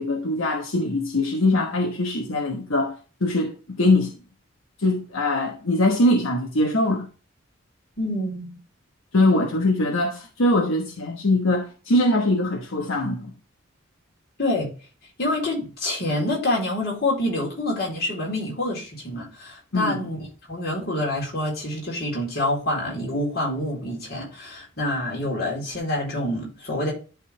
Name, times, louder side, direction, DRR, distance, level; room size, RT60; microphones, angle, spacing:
voice 1, 0.0-2.9 3.2-4.1 4.8-7.1 9.1-13.3 19.7-20.0, left 1 dB, 85° left, 1.2 m, -22 dB
voice 2, 8.0-8.6 9.3-9.4 14.4-14.7 15.2-20.2 20.5-26.9, left 1 dB, 50° left, 3.9 m, -27 dB
11.5 x 3.9 x 3.4 m
head